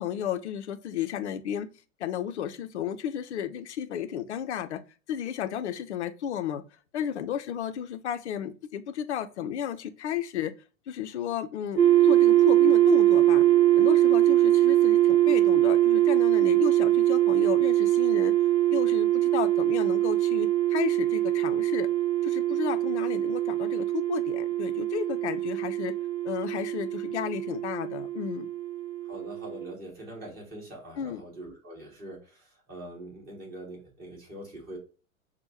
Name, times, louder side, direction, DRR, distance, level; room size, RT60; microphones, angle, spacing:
voice 1, 0.0-1.7 2.0-4.8 5.1-6.6 6.9-10.5 10.9-13.4 13.8-18.3 18.7-21.9 22.2-25.9 26.2-28.5 31.0-31.2, left 10 dB, 55° left, 0.5 m, -33 dB
sound 1, 11.8-29.7, right 14 dB, 85° right, 0.5 m, -23 dB
voice 2, 29.0-34.8, right 1 dB, 20° right, 1.8 m, -43 dB
6.1 x 2.1 x 2.7 m
figure-of-eight pair, 105°, 42 cm